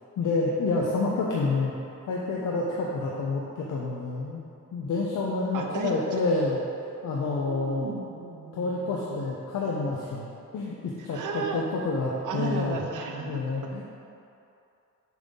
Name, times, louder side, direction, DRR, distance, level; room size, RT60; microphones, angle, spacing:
voice 1, 0.2-1.7 2.1-4.4 4.7-7.9 8.5-10.3 10.5-12.8 13.3-13.8, left 3 dB, 75° left, -3 dB, 0.8 m, -28 dB
voice 2, 5.5-6.2 7.5-9.3 11.0-11.6 12.2-13.7, right 4 dB, 75° right, 2 dB, 0.8 m, -34 dB
7.3 x 3.8 x 5.5 m, 2.7 s
cardioid pair, 120°, 31 cm